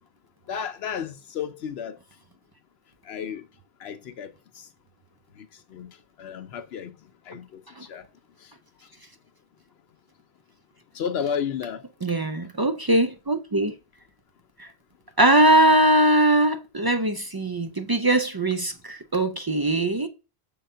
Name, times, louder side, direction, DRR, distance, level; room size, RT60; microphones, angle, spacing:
voice 1, 0.5-2.0 3.1-3.4 3.8-4.3 5.7-5.9 6.2-6.9 7.3-7.4 7.9-8.0 10.9-11.8, left 7 dB, 80° left, 0.9 m, -31 dB
voice 2, 12.0-13.7 14.6-14.7 15.2-20.1, right 1 dB, 35° right, 0.3 m, -21 dB
6.8 x 3.8 x 5.5 m
omnidirectional pair, 1.0 m